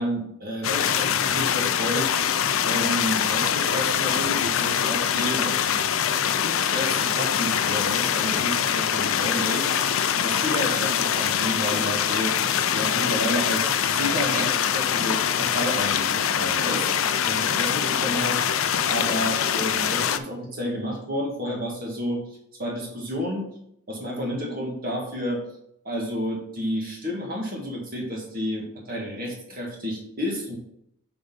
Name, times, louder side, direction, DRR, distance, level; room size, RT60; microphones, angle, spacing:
voice 1, 0.0-2.1 2.6-5.6 6.4-9.7 10.2-12.4 12.7-16.9 17.3-18.4 18.9-22.2 22.6-23.5 23.9-25.4 25.9-30.5, equal, 45° right, -1 dB, 1.7 m, -30 dB
sound 1, 0.6-20.2, left 8 dB, 80° left, 0.5 m, -24 dB
6.7 x 4.1 x 5.4 m, 0.74 s
head